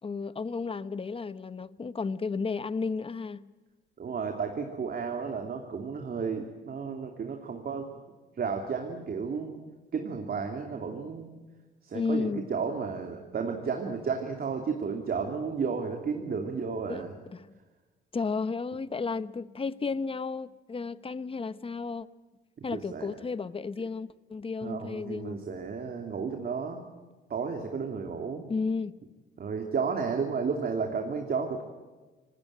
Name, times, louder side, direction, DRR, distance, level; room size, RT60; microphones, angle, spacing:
voice 1, 0.0-3.5 11.9-12.5 16.9-17.0 17.3-17.6 18.1-22.1 22.6-25.4 28.5-29.0, left 4 dB, 30° left, 1.0 m, -33 dB
voice 2, 4.0-7.9 8.4-9.6 9.9-11.3 11.8-17.1 22.6-23.1 24.6-26.8 27.3-28.4 29.4-31.6, right 5 dB, 50° right, 2.8 m, -32 dB
26.0 x 20.0 x 9.1 m
cardioid pair, 90°, 20 cm